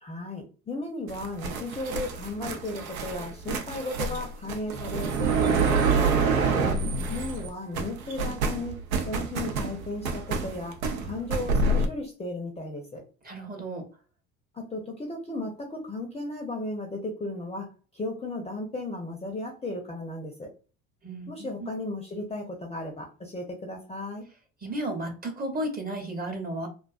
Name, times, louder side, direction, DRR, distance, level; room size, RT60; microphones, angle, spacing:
voice 1, 0.0-6.3 7.1-13.0 14.5-20.5 21.3-24.3, left 2 dB, 15° left, 1 dB, 0.5 m, -35 dB
sound 1, 1.1-7.5 7.7-11.9, right 4 dB, 90° right, 0.5 m, -27 dB
voice 2, 6.6-7.1 13.2-13.9 21.0-21.7 24.6-26.7, right 1 dB, 20° right, 4 dB, 0.7 m, -34 dB
2.3 x 2.3 x 2.3 m, 0.36 s
hypercardioid pair, 70°, 41 cm